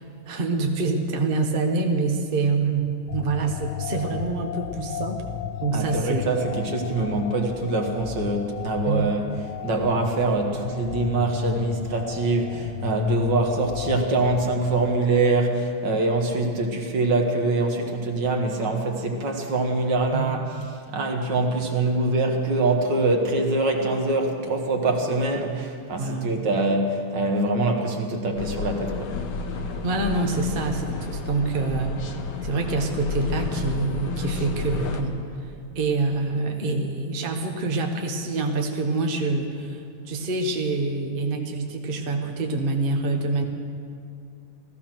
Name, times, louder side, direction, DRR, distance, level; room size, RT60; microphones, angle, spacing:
voice 1, 0.3-5.2 5.6-6.2 8.9-9.1 20.1-20.4 26.0-26.3 29.8-31.9 32.4-35.2 35.7-43.4, right 3 dB, 35° right, 3 dB, 0.9 m, -26 dB
sound 1, 3.1-15.0, left 10 dB, 80° left, 0.9 m, -33 dB
voice 2, 5.7-9.3 9.6-20.5 20.9-29.1, right 2 dB, 55° right, 3 dB, 1.9 m, -24 dB
sound 2, 28.4-35.0, left 4 dB, 60° left, 1.5 m, -31 dB
16.5 x 14.5 x 6.0 m, 2.3 s
omnidirectional pair, 2.4 m